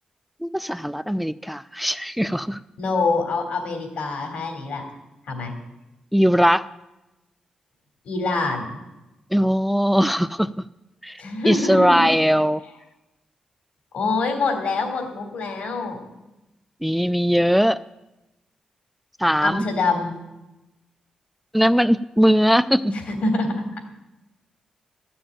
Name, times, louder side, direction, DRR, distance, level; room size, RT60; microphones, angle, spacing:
voice 1, 0.4-2.6 6.1-6.7 9.3-10.5 11.0-12.6 16.8-17.8 19.2-19.6 21.5-22.9, equal, ahead, 13 dB, 0.4 m, -20 dB
voice 2, 2.8-4.9 5.3-5.5 8.0-8.8 11.2-12.1 13.9-16.0 19.4-20.2 22.9-23.5, left 3 dB, 75° left, 5 dB, 3.2 m, -25 dB
13.5 x 7.0 x 9.0 m, 0.98 s
cardioid pair, 70°, 2 cm